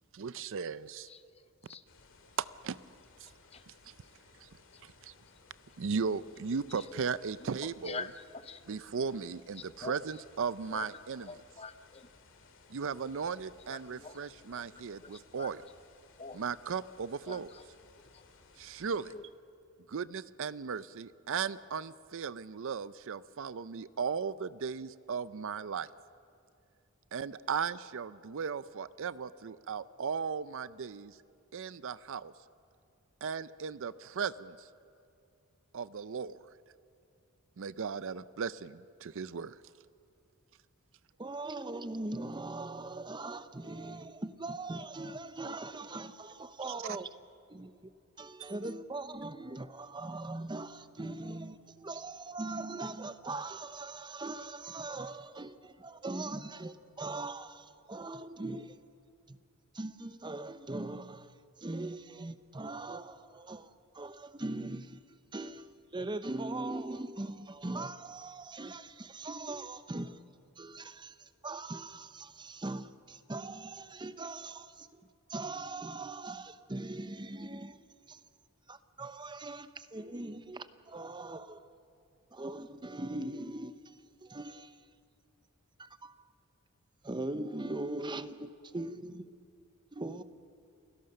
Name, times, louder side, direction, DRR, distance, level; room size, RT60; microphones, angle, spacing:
voice 1, 0.1-1.1 2.4-2.8 3.2-3.3 3.7-4.0 4.4-4.5 4.8-5.1 5.8-8.0 8.7-11.3 12.7-15.6 16.3-17.5 18.6-19.1 19.9-25.9 27.1-31.2 31.5-32.3 33.2-34.7 35.7-36.5 37.6-39.6 46.8-47.0 48.4-48.5, right 6 dB, 65° right, 0.5 m, -37 dB
voice 2, 1.1-1.8 3.2-3.6 4.0-4.1 4.7-4.8 6.2-6.3 6.7-6.9 7.4-8.6 9.6-10.0 10.7-10.9 11.2-12.1 13.7-14.2 14.5-15.5 16.2-16.4 17.3-17.6 18.1-18.3 19.1-19.3, left 4 dB, 30° left, 0.7 m, -46 dB
sound 1, 1.9-19.1, left 3 dB, 65° left, 2.2 m, -61 dB
voice 3, 41.2-47.1 47.5-47.9 48.2-58.8 59.3-59.4 59.7-61.3 61.6-65.0 65.3-65.7 65.9-70.2 70.6-75.0 75.3-77.8 78.1-78.2 78.7-81.6 82.3-83.9 84.2-84.8 85.8-86.2 87.0-89.3 89.9-90.2, right 2 dB, 20° right, 0.8 m, -40 dB
28.5 x 17.0 x 6.6 m
head